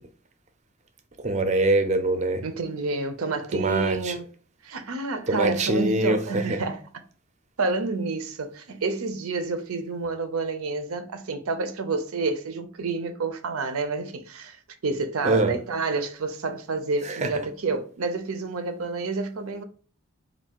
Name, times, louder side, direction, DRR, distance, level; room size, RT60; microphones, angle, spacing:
voice 1, 1.2-2.4 3.5-4.1 5.3-6.6 15.2-15.6 17.1-17.3, right 2 dB, 30° right, 0.5 m, -24 dB
voice 2, 2.4-4.3 4.6-6.8 7.6-14.6 14.8-19.6, right 3 dB, 90° right, 0.6 m, -29 dB
4.4 x 2.6 x 2.9 m
head